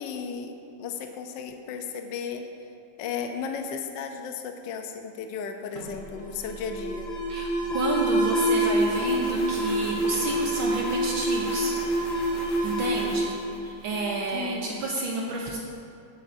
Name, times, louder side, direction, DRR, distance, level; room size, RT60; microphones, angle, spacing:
voice 1, 0.0-2.5 3.0-7.1 14.3-14.9, left 6 dB, 70° left, 5 dB, 1.2 m, -35 dB
Alarm, 5.7-14.3, right 1 dB, 40° left, 1.4 m, -27 dB
voice 2, 7.3-11.8 12.6-15.6, right 3 dB, 70° right, -2 dB, 1.6 m, -30 dB
16.5 x 8.6 x 2.7 m, 2.5 s
omnidirectional pair, 2.4 m